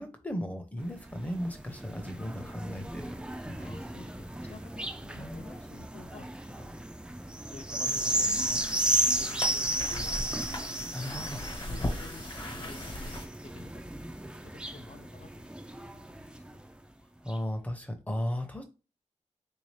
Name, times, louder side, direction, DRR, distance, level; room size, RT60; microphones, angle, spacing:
voice 1, 0.0-3.7 5.2-5.5 10.7-11.4 17.2-18.6, equal, 10° left, 6 dB, 0.7 m, -36 dB
sound 1, 0.8-16.6 17.3-17.4, right 1 dB, 10° right, 0.3 m, -34 dB
voice 2, 3.5-6.9 7.3-10.2 11.5-13.7 14.0-14.1 14.4-15.5 15.9-16.6, left 4 dB, 55° left, 8 dB, 0.6 m, -51 dB
sound 2, 7.8-13.3, left 1 dB, 40° left, 1.1 m, -38 dB
3.6 x 2.7 x 3.2 m, 0.32 s
wide cardioid pair, 125°, 12 cm